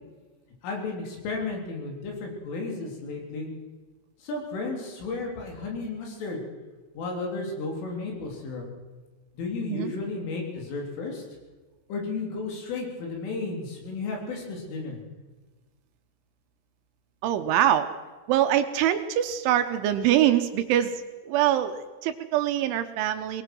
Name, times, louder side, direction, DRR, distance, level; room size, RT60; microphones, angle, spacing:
voice 1, 0.6-3.5 4.2-6.4 6.9-8.6 9.3-11.2 11.9-15.0, left 3 dB, 70° left, 0 dB, 6.0 m, -33 dB
voice 2, 17.2-18.0 18.3-23.4, right 11 dB, 80° right, 8 dB, 3.1 m, -24 dB
23.5 x 20.0 x 6.2 m, 1.3 s
omnidirectional pair, 5.9 m